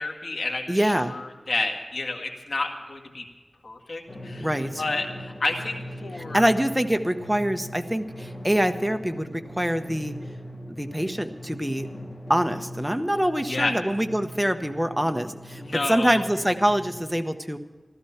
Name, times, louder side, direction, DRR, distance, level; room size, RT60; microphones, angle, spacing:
voice 1, 0.0-3.2 3.6-4.5 4.8-6.5 13.5-13.7 15.6-16.2, left 2 dB, 90° left, 1 dB, 1.9 m, -30 dB
voice 2, 0.7-1.2 4.4-4.8 6.3-10.1 10.7-11.9 12.3-17.6, equal, 5° right, 7 dB, 1.0 m, -25 dB
Drum, 4.1-17.0, equal, 45° left, 4.2 m, -40 dB
15.0 x 13.0 x 5.8 m, 1.3 s
wide cardioid pair, 70°, 0 cm